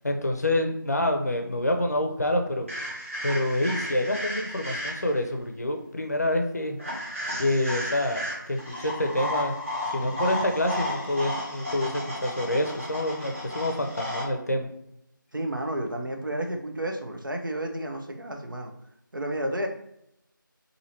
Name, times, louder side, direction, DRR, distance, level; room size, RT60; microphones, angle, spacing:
voice 1, 0.0-2.7 3.2-6.8 7.4-9.5 9.9-14.7, left 1 dB, 50° left, 4 dB, 0.5 m, -27 dB
sound 1, 2.7-5.2 6.8-14.2, left 1 dB, 40° right, 1.1 m, -33 dB
voice 2, 15.3-18.7 19.1-19.7, right 1 dB, 70° right, 3 dB, 0.7 m, -31 dB
2.8 x 2.7 x 4.2 m, 0.78 s
figure-of-eight pair, 175°, 11 cm